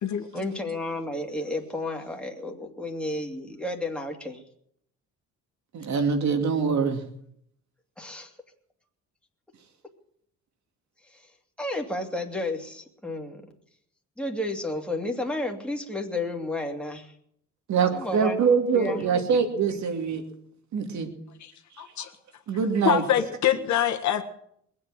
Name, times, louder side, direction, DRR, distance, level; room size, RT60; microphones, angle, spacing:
voice 1, 0.3-4.4 8.0-8.3 11.6-13.4 14.2-17.1 17.9-18.4 18.7-19.3, left 2 dB, 5° left, 1 dB, 2.4 m, -32 dB
voice 2, 5.7-7.0 17.7-20.2 20.7-21.1 22.0-22.1 22.5-23.0, right 6 dB, 70° right, 5 dB, 2.6 m, -24 dB
voice 3, 21.8-22.1 22.8-24.2, left 10 dB, 70° left, 5 dB, 1.7 m, -24 dB
21.0 x 8.6 x 7.6 m, 0.69 s
cardioid pair, 90°, 30 cm